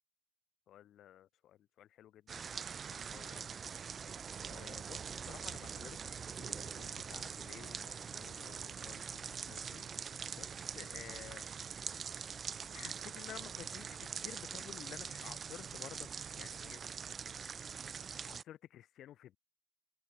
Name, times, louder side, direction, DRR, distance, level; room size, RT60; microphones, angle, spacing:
voice 1, 0.7-3.5 4.4-5.0 5.3-9.8 10.3-12.2 12.7-16.1 16.4-16.8 18.3-19.4, left 12 dB, 80° left, 2.8 m, -54 dB
sound 1, 2.3-18.4, right 6 dB, 55° right, 0.3 m, -44 dB
cardioid pair, 70°, 0 cm